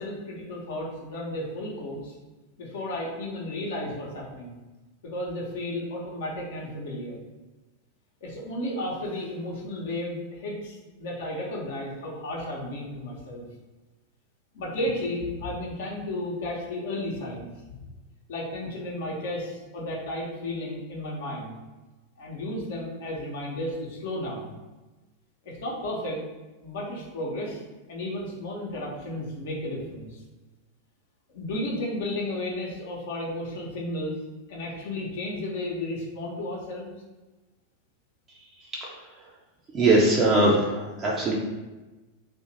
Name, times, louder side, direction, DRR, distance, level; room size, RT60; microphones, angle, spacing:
voice 1, 0.0-2.1 2.6-4.5 5.0-7.2 8.2-13.4 14.5-17.8 18.3-21.5 22.2-24.5 25.4-26.2 26.6-27.6 27.9-30.2 31.3-34.1 34.5-36.9, left 1 dB, 55° left, -3 dB, 0.9 m, -33 dB
voice 2, 39.7-41.3, right 2 dB, 25° right, -4 dB, 0.6 m, -21 dB
2.8 x 2.5 x 4.0 m, 1.2 s
figure-of-eight pair, 90°, 0 cm